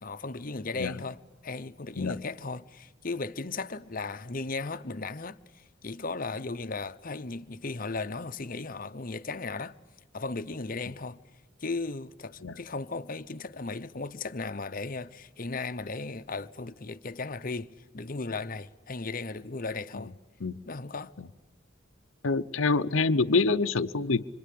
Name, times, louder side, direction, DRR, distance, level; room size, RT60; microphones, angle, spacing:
voice 1, 0.0-9.8 10.1-11.2 11.6-20.1 20.7-21.1, left 3 dB, 45° left, 0.9 m, -36 dB
voice 2, 22.2-24.2, left 3 dB, 80° left, 0.8 m, -26 dB
26.5 x 25.5 x 8.6 m
head